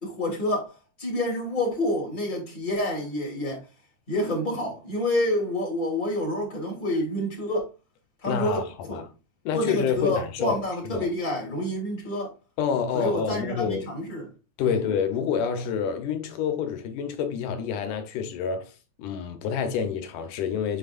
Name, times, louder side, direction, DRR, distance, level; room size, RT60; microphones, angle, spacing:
voice 1, 0.0-0.7 1.0-3.7 4.1-7.7 8.2-9.0 9.5-12.3 12.9-14.3 14.6-14.8, left 1 dB, 15° left, 2.7 m, -28 dB
voice 2, 8.3-9.1 9.5-11.1 12.6-13.9 14.6-18.7 19.0-20.8, left 7 dB, 85° left, 2.5 m, -28 dB
8.1 x 5.9 x 2.5 m
omnidirectional pair, 3.5 m